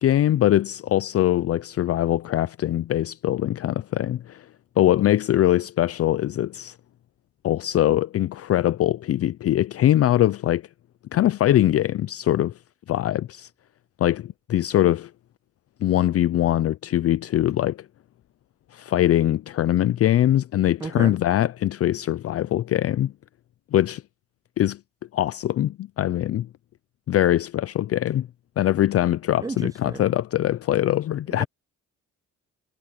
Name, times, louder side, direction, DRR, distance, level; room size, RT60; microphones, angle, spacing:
voice 1, 0.0-4.5 4.8-6.7 7.4-10.6 11.1-12.5 12.9-13.5 14.0-15.1 15.8-17.8 18.7-23.1 23.7-24.0 24.6-24.8 25.1-26.5 27.1-28.3 28.6-31.4, left 12 dB, 50° left, 0.5 m, -22 dB
voice 2, 20.8-21.2 29.4-30.0 31.3-31.4, right 4 dB, 10° right, 0.4 m, -32 dB
cardioid pair, 90°, 30 cm